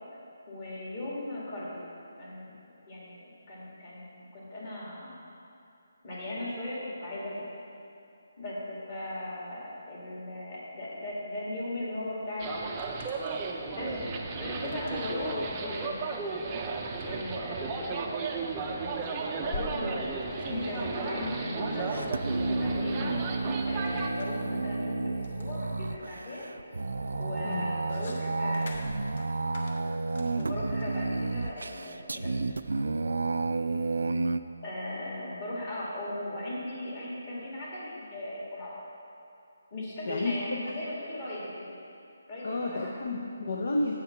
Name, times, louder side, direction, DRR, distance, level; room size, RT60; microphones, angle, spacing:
voice 1, 0.5-1.9 2.2-2.5 2.9-5.1 6.0-7.5 8.4-13.0 13.6-16.3 17.0-22.1 22.6-23.0 23.7-26.4 27.2-28.9 30.4-32.3 34.6-38.8 39.7-41.8 42.3-43.0, left 1 dB, 30° left, -6 dB, 2.1 m, -38 dB
sound 1, 12.0-12.1 12.3-13.6 14.6-31.8, left 2 dB, 50° left, 1.0 m, -48 dB
sound 2, 12.4-24.1, right 4 dB, 15° right, 0.5 m, -35 dB
sound 3, 21.1-34.4, right 3 dB, 85° right, 0.3 m, -31 dB
voice 2, 42.4-43.9, left 2 dB, 65° left, 1 dB, 0.8 m, -31 dB
8.1 x 5.6 x 5.7 m, 2.7 s
hypercardioid pair, 170°, 0 cm